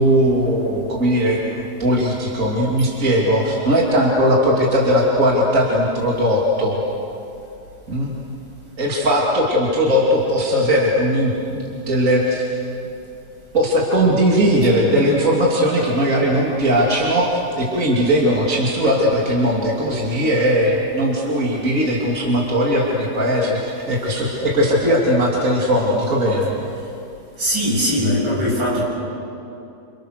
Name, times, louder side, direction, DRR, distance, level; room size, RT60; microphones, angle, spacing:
voice 1, 0.0-6.8 7.9-8.1 8.8-12.5 13.5-26.5, equal, 45° right, -3 dB, 3.3 m, -18 dB
voice 2, 27.4-28.8, equal, 80° right, -5 dB, 8.5 m, -20 dB
29.0 x 27.0 x 6.6 m, 2.7 s
omnidirectional pair, 2.0 m